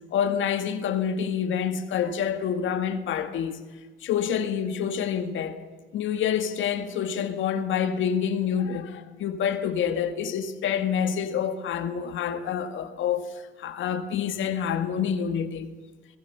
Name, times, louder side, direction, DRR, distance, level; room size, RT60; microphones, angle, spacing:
voice 1, 0.1-3.6 4.0-5.6 5.9-15.7, left 8 dB, 80° left, 2.0 m, -27 dB
25.5 x 20.5 x 6.9 m
cardioid pair, 90°, 20 cm